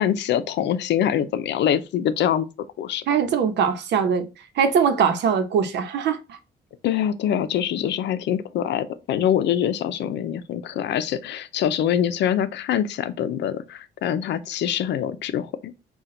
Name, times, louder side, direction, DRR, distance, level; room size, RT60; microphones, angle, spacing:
voice 1, 0.0-2.5 2.8-3.0 6.8-15.7, left 10 dB, 80° left, 0.6 m, -24 dB
voice 2, 3.1-4.3 4.6-6.4, right 7 dB, 85° right, 0.9 m, -21 dB
5.8 x 2.4 x 3.7 m
cardioid pair, 130°, 18 cm